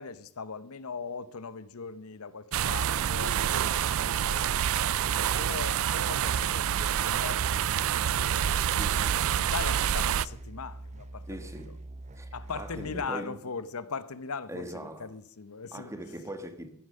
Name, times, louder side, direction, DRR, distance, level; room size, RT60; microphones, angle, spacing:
voice 1, 0.0-4.7 5.3-8.8 9.4-11.4 12.3-15.9, left 5 dB, 70° left, 0.8 m, -40 dB
sound 1, 2.5-10.3, right 9 dB, 65° right, 0.4 m, -27 dB
sound 2, 6.1-13.1, right 1 dB, 30° right, 0.7 m, -44 dB
voice 2, 8.7-9.3 11.3-11.7 12.1-13.4 14.5-15.1 15.7-16.7, right 1 dB, 15° right, 1.4 m, -41 dB
15.0 x 9.9 x 5.5 m
head